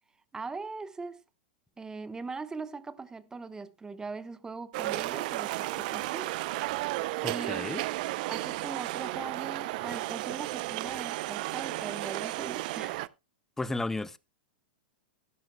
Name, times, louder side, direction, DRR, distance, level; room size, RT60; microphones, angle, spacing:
voice 1, 0.3-1.2 1.8-6.3 7.2-7.6 8.2-13.1, right 4 dB, 10° right, 1.0 m, -41 dB
sound 1, 4.7-13.1, right 19 dB, 55° right, 0.6 m, -33 dB
voice 2, 7.2-7.8 13.6-14.2, left 2 dB, 5° left, 0.6 m, -33 dB
15.5 x 12.0 x 2.2 m
hypercardioid pair, 105°, 5 cm